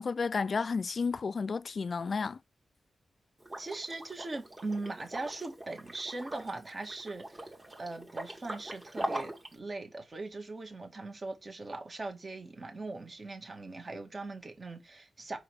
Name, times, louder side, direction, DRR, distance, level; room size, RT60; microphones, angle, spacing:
voice 1, 0.0-2.4, left 5 dB, 60° left, 0.3 m, -32 dB
Liquid, 3.4-9.5, right 1 dB, 30° right, 2.1 m, -41 dB
voice 2, 3.6-7.5 7.8-15.4, right 2 dB, 45° right, 1.8 m, -40 dB
5.0 x 4.9 x 4.7 m
supercardioid pair, 40°, 0 cm